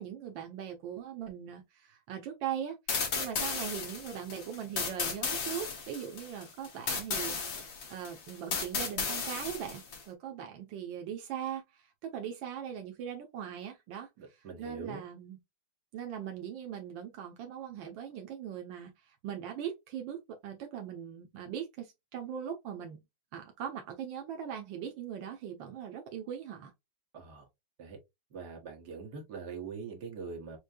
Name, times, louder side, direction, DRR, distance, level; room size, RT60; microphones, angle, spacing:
voice 1, 0.0-2.8 3.1-14.1 14.6-15.4 15.9-23.0 23.3-26.7, right 9 dB, 85° right, 1.6 m, -40 dB
sound 1, 2.9-10.0, left 5 dB, 85° left, 2.2 m, -34 dB
voice 2, 14.2-15.0 27.1-27.5 27.8-28.0 28.3-30.6, right 5 dB, 60° right, 1.8 m, -43 dB
6.3 x 2.2 x 2.6 m
omnidirectional pair, 2.0 m